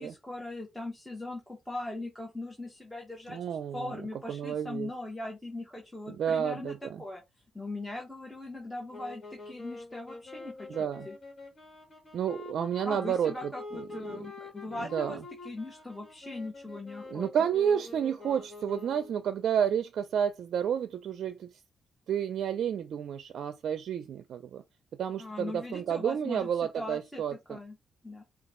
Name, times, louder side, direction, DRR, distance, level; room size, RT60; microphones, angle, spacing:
voice 1, 0.0-3.4 3.7-7.2 7.5-11.2 12.8-15.2 15.4-17.3 25.2-26.5 26.7-27.2 27.5-27.8 28.0-28.2, left 2 dB, 5° left, 1.3 m, -40 dB
voice 2, 3.3-4.0 4.3-4.9 6.1-6.8 10.7-11.1 12.1-13.3 13.7-13.8 14.1-14.2 14.8-15.2 17.1-21.5 22.1-24.6 25.0-27.6, right 8 dB, 70° right, 0.5 m, -30 dB
sound 1, 8.9-19.3, left 3 dB, 40° left, 1.7 m, -46 dB
4.9 x 2.4 x 3.7 m
cardioid pair, 105°, 0 cm